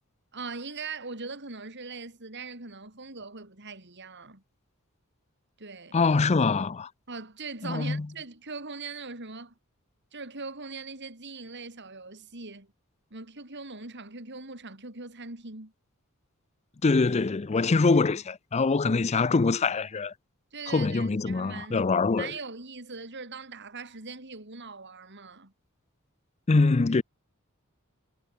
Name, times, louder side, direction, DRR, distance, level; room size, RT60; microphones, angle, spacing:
voice 1, 0.3-4.4 5.6-6.0 7.1-9.5 10.1-12.7 13.1-15.7 20.5-21.8 22.2-25.5, right 4 dB, 55° right, 4.4 m, -40 dB
voice 2, 5.9-6.9 7.6-8.1 16.8-20.1 20.7-22.3 26.5-27.0, left 3 dB, 30° left, 0.5 m, -24 dB
head